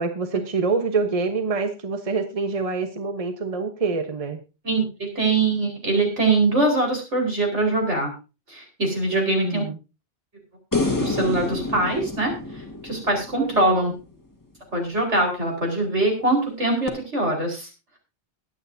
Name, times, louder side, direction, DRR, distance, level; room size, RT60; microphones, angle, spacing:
voice 1, 0.0-4.4 9.1-9.8 13.4-13.9, right 4 dB, 30° right, 7 dB, 1.2 m, -26 dB
voice 2, 4.6-8.1 8.5-9.7 11.0-13.9 14.7-17.7, right 2 dB, 80° right, 1 dB, 5.0 m, -23 dB
sound 1, 10.7-14.0 16.9-17.0, left 2 dB, 15° left, 1.7 m, -28 dB
22.0 x 8.8 x 2.7 m, 0.30 s
omnidirectional pair, 1.2 m